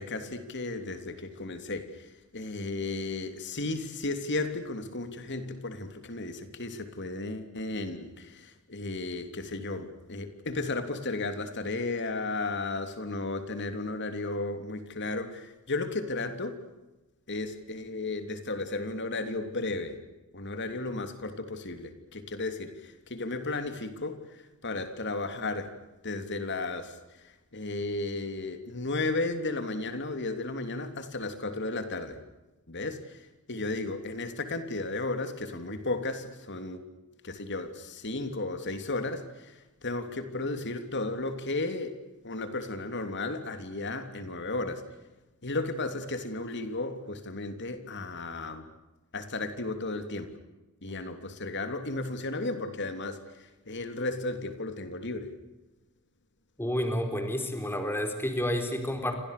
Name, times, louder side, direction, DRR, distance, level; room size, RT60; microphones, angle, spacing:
voice 1, 0.0-16.6 17.3-20.0 20.3-25.7 26.0-32.2 32.7-36.8 37.2-42.0 42.2-44.9 45.4-48.7 49.1-50.4 50.8-55.3, left 2 dB, 55° left, 3.2 m, -34 dB
voice 2, 56.6-59.2, equal, 10° left, 4.2 m, -30 dB
30.0 x 26.5 x 6.8 m
head